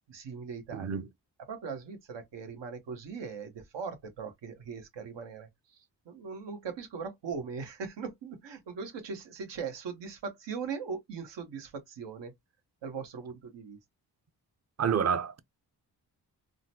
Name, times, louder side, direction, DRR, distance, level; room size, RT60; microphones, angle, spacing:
voice 1, 0.1-0.9 1.5-5.5 6.1-12.3 12.8-13.8, right 5 dB, 90° right, 1.2 m, -40 dB
voice 2, 0.7-1.1 14.8-15.4, right 7 dB, 40° right, 0.6 m, -28 dB
3.8 x 2.1 x 2.8 m
cardioid pair, 70°, 42 cm